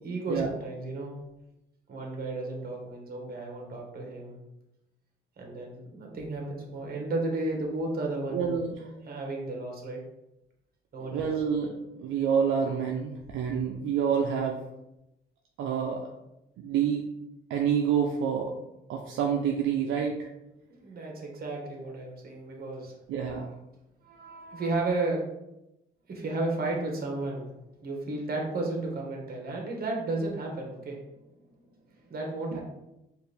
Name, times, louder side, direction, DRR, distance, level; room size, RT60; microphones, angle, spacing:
voice 1, 0.0-1.2 1.9-4.4 5.4-8.6 9.0-10.0 10.9-11.3 20.7-22.9 24.0-25.2 26.1-27.5 27.8-31.0 32.1-32.6, right 2 dB, 50° right, 0 dB, 1.3 m, -33 dB
voice 2, 8.3-8.8 11.0-14.6 15.6-16.1 16.6-17.1 17.5-18.5 18.9-20.2 23.1-23.5 32.5-32.6, right 7 dB, 75° right, 1 dB, 0.5 m, -28 dB
4.7 x 2.5 x 3.3 m, 0.90 s
cardioid pair, 90°, 20 cm